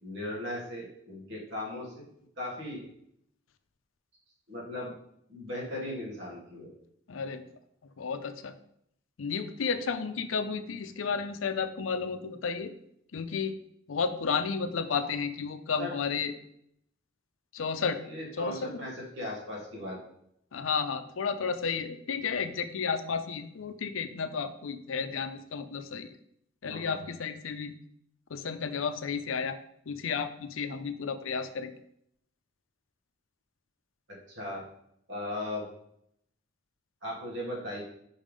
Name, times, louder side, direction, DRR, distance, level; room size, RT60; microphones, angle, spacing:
voice 1, 0.0-2.0 2.4-2.9 4.5-4.9 5.3-6.7 15.0-15.1 15.8-15.9 18.0-20.0 26.6-27.0 34.3-34.6 35.1-35.6 37.0-37.8, left 1 dB, 65° right, -4 dB, 2.4 m, -37 dB
voice 2, 7.1-7.4 8.0-8.5 9.2-12.7 13.1-13.6 13.9-16.3 17.5-18.0 18.4-18.7 20.5-26.1 26.6-27.7 28.3-29.6 29.9-31.7, left 5 dB, 85° left, 10 dB, 0.5 m, -32 dB
5.5 x 3.6 x 5.1 m, 0.72 s
head